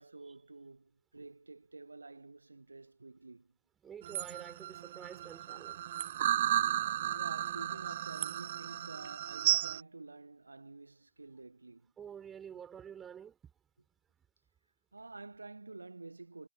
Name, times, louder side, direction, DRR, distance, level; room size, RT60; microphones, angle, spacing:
voice 1, 0.0-3.5 7.1-11.9 14.9-16.5, right 3 dB, 80° right, 1.0 m, -50 dB
voice 2, 3.8-5.8 12.0-13.5, right 8 dB, 25° right, 3.8 m, -49 dB
sound 1, 4.0-9.8, right 12 dB, 60° right, 0.6 m, -33 dB
figure-of-eight pair, 90°, 0 cm